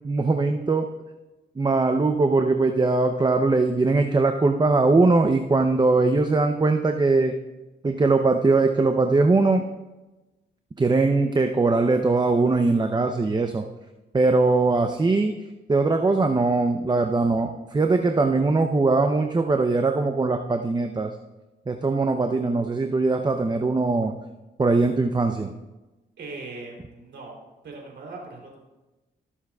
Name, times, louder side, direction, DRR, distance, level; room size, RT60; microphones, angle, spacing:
voice 1, 0.0-0.9 1.6-7.4 7.8-9.6 10.8-13.7 14.1-15.3 15.7-21.1 21.7-24.1 24.6-25.5, right 3 dB, 25° right, 5 dB, 0.6 m, -21 dB
voice 2, 26.2-27.4 27.6-28.6, right 3 dB, 80° right, -1 dB, 3.2 m, -39 dB
21.0 x 7.3 x 2.3 m, 1.1 s
cardioid pair, 80°, 19 cm